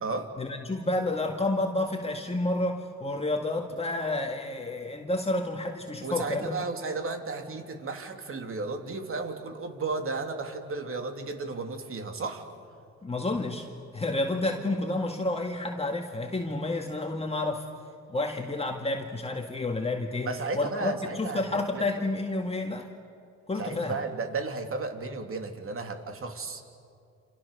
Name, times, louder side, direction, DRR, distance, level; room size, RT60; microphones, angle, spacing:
voice 1, 0.4-6.7 13.0-13.7 13.9-17.7 18.1-22.9 23.5-24.0, left 2 dB, 20° left, 2 dB, 2.1 m, -30 dB
voice 2, 6.0-12.5 20.2-21.9 23.6-26.6, right 3 dB, 45° right, 5 dB, 3.1 m, -34 dB
29.0 x 28.0 x 6.9 m, 2.4 s
cardioid pair, 90°, 30 cm